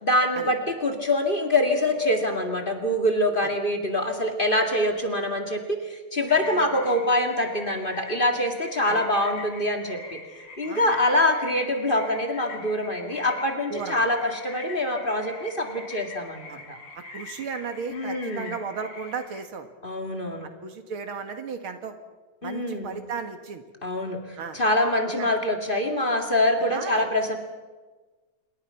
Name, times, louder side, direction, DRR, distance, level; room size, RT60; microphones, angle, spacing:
voice 1, 0.0-10.2 10.6-16.8 17.9-18.5 19.8-20.5 22.4-22.9 23.8-27.4, left 1 dB, 25° left, 4 dB, 2.4 m, -25 dB
sound 1, 6.3-19.4, left 3 dB, 85° left, 3.7 m, -44 dB
voice 2, 6.4-6.8 8.8-9.0 10.6-11.0 13.7-14.1 16.5-16.6 16.9-19.7 20.6-21.9 22.4-23.6 24.4-24.6 25.1-25.3 26.7-27.0, right 5 dB, 75° right, 7 dB, 2.6 m, -35 dB
27.0 x 22.5 x 5.8 m, 1.3 s
omnidirectional pair, 2.4 m